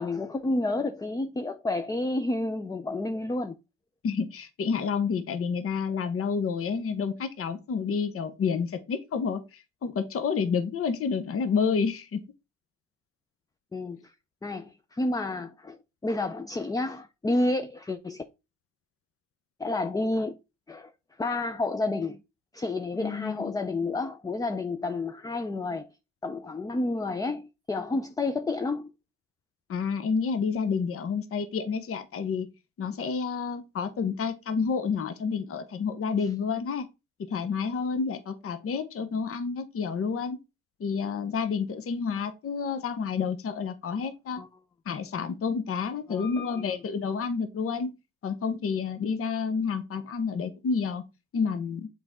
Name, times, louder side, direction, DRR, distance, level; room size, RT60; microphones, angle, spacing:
voice 1, 0.0-3.6 13.7-14.1 14.4-15.8 16.0-18.2 19.6-20.4 20.7-20.9 21.2-22.2 22.5-25.9 26.2-28.9 44.4-44.5 46.1-46.8, left 2 dB, 10° left, 0.4 m, -30 dB
voice 2, 4.0-12.2 22.9-23.5 29.7-32.5 32.8-36.9 37.3-40.4 40.8-44.4 44.9-47.9 48.2-51.0 51.3-51.9, left 5 dB, 50° left, 0.8 m, -29 dB
6.8 x 4.2 x 3.6 m
cardioid pair, 90°, 30 cm